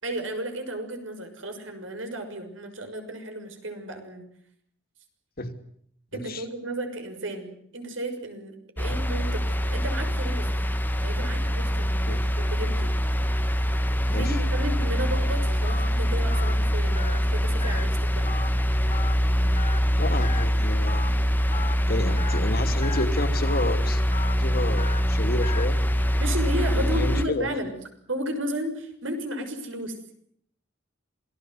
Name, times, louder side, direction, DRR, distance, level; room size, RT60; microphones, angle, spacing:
voice 1, 0.0-4.2 6.1-10.5 11.0-12.2 12.5-12.9 14.1-18.3 26.2-27.7 28.1-30.1, right 1 dB, 85° right, 6 dB, 6.4 m, -33 dB
voice 2, 6.1-6.4 8.8-9.0 12.1-12.2 14.1-14.4 20.0-21.0 21.9-24.0 24.4-25.8 26.7-27.6, left 2 dB, 50° left, 6 dB, 2.9 m, -30 dB
sound 1, 8.8-27.2, equal, 10° left, 1.3 m, -24 dB
Telephone, 15.7-15.9 16.3-16.5 17.0-17.2 17.6-17.8 18.3-18.5 18.9-19.1 19.6-19.8 20.2-20.4 20.9-21.1 21.5-21.7 22.2-22.4 22.8-23.1 23.5-23.7 24.1-24.4 24.8-25.0 25.4-25.7, left 5 dB, 35° left, 1.9 m, -36 dB
27.5 x 19.0 x 8.0 m, 0.66 s
head